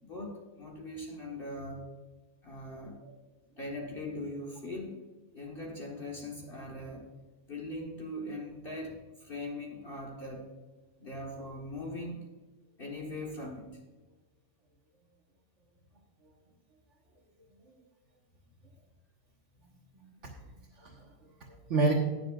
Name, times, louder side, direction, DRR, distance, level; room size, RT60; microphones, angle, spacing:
voice 1, 0.0-1.9 2.4-3.1 3.6-5.0 5.3-7.1 7.5-10.5 11.0-12.2 12.8-13.8, left 1 dB, 40° left, -2 dB, 1.7 m, -40 dB
voice 2, 19.9-20.3 20.6-21.9, right 3 dB, 60° right, -3 dB, 1.7 m, -32 dB
20.0 x 7.2 x 2.5 m, 1.2 s
omnidirectional pair, 1.4 m